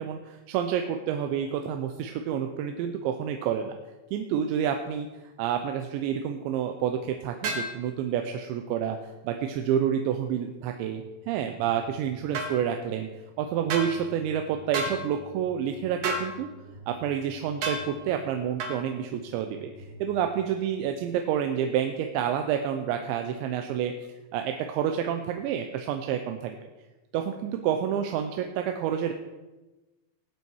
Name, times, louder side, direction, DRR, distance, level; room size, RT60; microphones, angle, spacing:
voice 1, 0.0-3.7 4.1-5.1 5.4-9.0 9.2-13.1 13.4-16.5 16.9-19.7 20.0-23.9 24.3-26.6 27.1-29.1, right 9 dB, 80° right, 5 dB, 2.9 m, -29 dB
sound 1, 7.4-7.7 12.3-12.5 13.7-13.9 14.7-15.0 16.0-16.3 17.6-17.8 18.6-18.8, right 2 dB, 50° right, 3.0 m, -29 dB
sound 2, 10.5-21.2, right 3 dB, 75° left, 6.3 m, -51 dB
19.5 x 8.4 x 4.7 m, 1.1 s
omnidirectional pair, 5.4 m